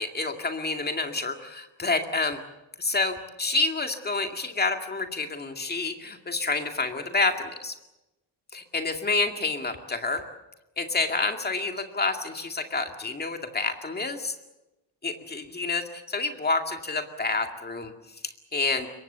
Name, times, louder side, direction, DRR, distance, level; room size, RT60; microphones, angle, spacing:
voice 1, 0.0-2.4 2.8-7.7 8.5-10.2 10.8-14.3 15.0-17.9 18.2-18.9, left 3 dB, 20° left, 5 dB, 2.2 m, -28 dB
25.5 x 22.5 x 6.8 m, 0.96 s
wide cardioid pair, 180°, 43 cm